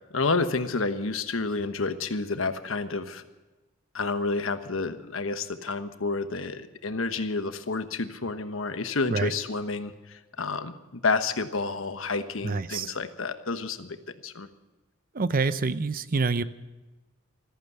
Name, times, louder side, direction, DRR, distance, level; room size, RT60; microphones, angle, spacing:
voice 1, 0.1-3.2 3.9-13.9 14.2-14.5, left 3 dB, 80° left, 9 dB, 1.2 m, -29 dB
voice 2, 12.4-12.9 15.1-16.4, right 4 dB, 45° right, 14 dB, 0.6 m, -26 dB
15.0 x 14.0 x 6.7 m, 1.1 s
head